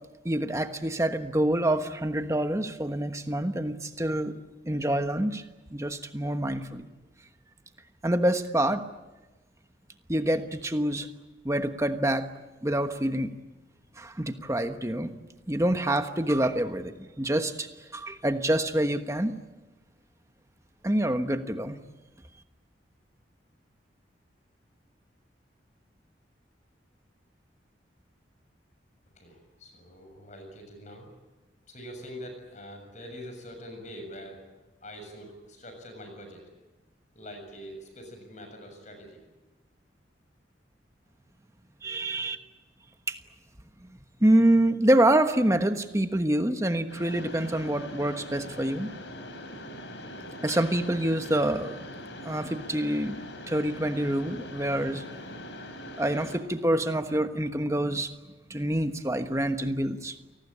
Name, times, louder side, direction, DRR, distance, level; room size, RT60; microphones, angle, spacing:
voice 1, 0.2-4.3 4.6-5.4 5.7-6.9 8.0-8.8 10.1-11.1 11.4-12.3 12.6-13.3 14.0-15.1 15.5-19.3 20.8-21.8 41.8-42.4 43.1-43.2 43.8-43.9 44.2-48.9 50.4-51.8 52.2-53.2 53.5-55.0 56.0-58.1 58.5-60.2, right 1 dB, 15° right, 8 dB, 1.3 m, -26 dB
voice 2, 29.2-31.1 31.7-34.5 34.8-36.4 37.1-39.2, equal, 40° left, 5 dB, 7.0 m, -44 dB
Mechanisms, 46.9-56.4, left 1 dB, 75° left, 4.8 m, -42 dB
28.5 x 19.5 x 8.7 m, 1.1 s
head